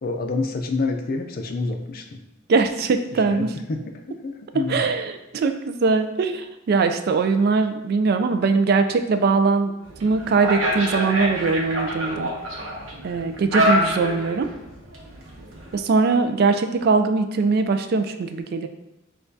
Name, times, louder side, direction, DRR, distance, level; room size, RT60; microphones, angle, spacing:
voice 1, 0.0-2.2 3.2-3.8 4.2-4.8, left 3 dB, 50° left, 4 dB, 0.4 m, -27 dB
voice 2, 2.5-3.5 4.5-9.7 10.0-12.3 13.0-14.5 15.7-18.7, right 4 dB, 50° right, 8 dB, 0.3 m, -21 dB
sound 1, 9.8-15.8, equal, 75° right, 0.8 m, -26 dB
6.4 x 2.3 x 2.6 m, 0.96 s
head